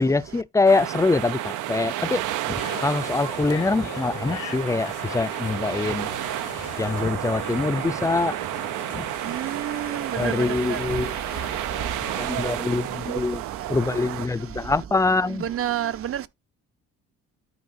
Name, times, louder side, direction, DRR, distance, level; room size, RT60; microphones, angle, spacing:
voice 1, 0.0-2.6 2.8-6.1 6.8-8.4 8.9-9.0 10.2-11.1 12.2-13.4 13.7-15.4, left 3 dB, 10° left, 0.4 m, -24 dB
sound 1, 0.6-14.3, right 14 dB, 85° right, 0.6 m, -31 dB
sound 2, 2.6-12.3, left 11 dB, 85° left, 1.1 m, -40 dB
voice 2, 9.4-10.3 10.7-10.8 15.5-16.3, right 11 dB, 50° right, 0.7 m, -28 dB
12.5 x 4.5 x 2.6 m
cardioid pair, 90°, 30 cm